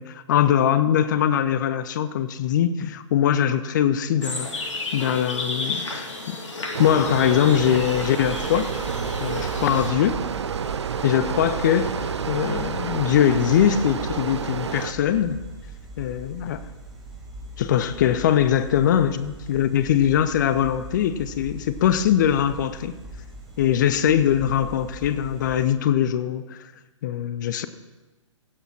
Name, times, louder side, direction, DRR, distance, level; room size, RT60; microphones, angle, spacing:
voice 1, 0.0-4.5 4.9-8.7 9.2-10.2 11.0-15.4 16.0-16.6 17.6-23.0 23.6-26.6 27.0-27.7, left 9 dB, 35° left, 13 dB, 0.6 m, -22 dB
sound 1, 4.2-9.9, left 2 dB, 70° left, 2.0 m, -33 dB
sound 2, 6.7-14.9, right 6 dB, 60° right, 0.7 m, -29 dB
sound 3, 7.6-25.7, right 1 dB, ahead, 2.2 m, -42 dB
16.5 x 8.0 x 4.4 m, 1.1 s
figure-of-eight pair, 125°, 16 cm